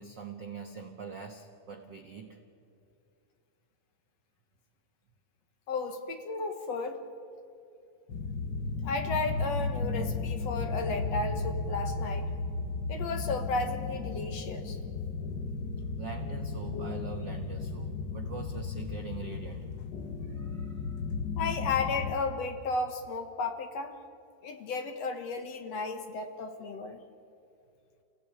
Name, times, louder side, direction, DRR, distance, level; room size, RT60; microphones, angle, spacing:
voice 1, 0.0-2.4 16.0-19.7 20.3-21.0, right 5 dB, 60° right, 3 dB, 1.2 m, -43 dB
voice 2, 5.7-7.0 8.8-12.3 12.9-14.8 21.4-23.9 24.4-27.0, left 3 dB, 60° left, 6 dB, 2.1 m, -33 dB
sound 1, 8.1-22.2, left 4 dB, 90° left, 0.9 m, -34 dB
28.5 x 17.0 x 8.7 m, 2.6 s
omnidirectional pair, 3.8 m